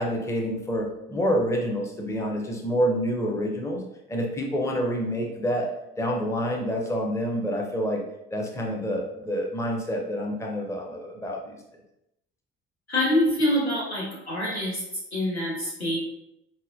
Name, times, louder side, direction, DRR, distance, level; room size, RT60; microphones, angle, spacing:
voice 1, 0.0-3.8 4.1-5.7 6.0-8.0 8.3-11.5, equal, 10° left, 0 dB, 0.5 m, -27 dB
voice 2, 12.9-14.8 15.1-16.0, left 1 dB, 90° left, -6 dB, 0.8 m, -25 dB
4.0 x 2.1 x 2.5 m, 0.86 s
figure-of-eight pair, 50°, 31 cm